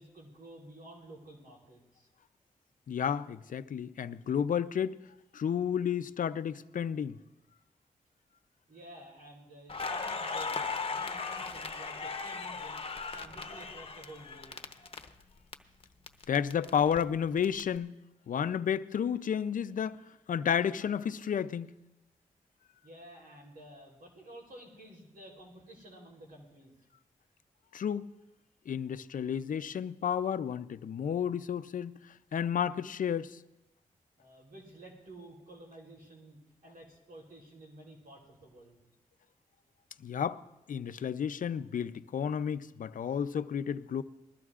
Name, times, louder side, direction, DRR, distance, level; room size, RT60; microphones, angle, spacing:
voice 1, 0.0-2.1 8.7-10.6 10.9-12.8 13.1-14.6 22.8-26.7 34.2-38.8, right 1 dB, 85° right, 3.5 m, -51 dB
voice 2, 2.9-5.0 5.3-7.2 16.3-17.9 18.3-20.0 20.3-21.7 27.7-28.1 28.7-32.0 32.3-33.4 40.0-40.4 40.7-44.0, left 8 dB, 65° left, 0.5 m, -31 dB
Crackle, 9.7-15.5 15.8-17.6, left 4 dB, 40° left, 0.9 m, -38 dB
21.0 x 14.0 x 2.4 m
cardioid pair, 55°, 15 cm